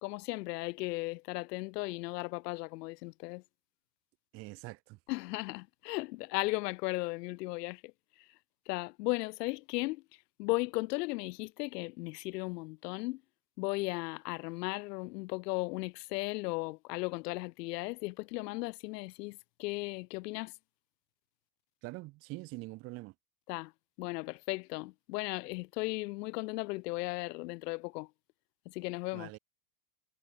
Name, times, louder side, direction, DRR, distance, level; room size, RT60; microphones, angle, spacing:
voice 1, 0.0-3.4 5.1-7.9 8.7-10.0 10.4-13.2 13.6-20.5 23.5-23.7 24.0-28.1 28.7-29.3, left 23 dB, 75° left, 0.6 m, -36 dB
voice 2, 4.3-5.0 21.8-23.1 29.1-29.4, right 22 dB, 30° right, 0.4 m, -44 dB
hypercardioid pair, 105°, 49 cm